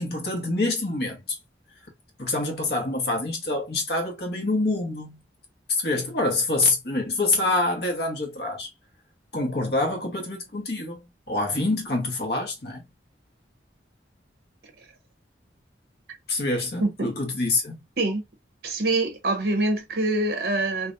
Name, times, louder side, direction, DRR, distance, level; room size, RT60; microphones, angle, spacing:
voice 1, 0.0-1.4 2.2-5.2 5.7-8.7 9.3-11.0 11.3-12.8 16.3-17.8, left 2 dB, 60° left, 1.2 m, -26 dB
voice 2, 18.6-20.9, right 2 dB, 55° right, 1.0 m, -25 dB
3.3 x 2.6 x 2.6 m
head